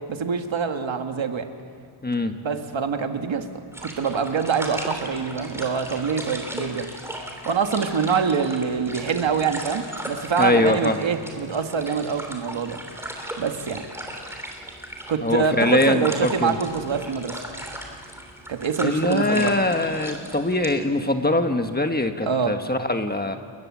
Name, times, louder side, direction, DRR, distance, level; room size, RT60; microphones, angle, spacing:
voice 1, 0.0-1.5 2.4-3.5 3.8-6.9 7.5-12.8 13.4-13.8 15.1-17.4 18.5-19.6 22.2-22.6, right 6 dB, 65° right, 6 dB, 1.7 m, -25 dB
voice 2, 2.0-2.3 10.4-11.0 15.2-16.6 18.8-23.4, left 2 dB, 20° left, 6 dB, 1.3 m, -22 dB
sound 1, 3.7-20.7, right 1 dB, 5° right, 3.0 m, -37 dB
30.0 x 20.0 x 7.4 m, 2.1 s
wide cardioid pair, 130°, 49 cm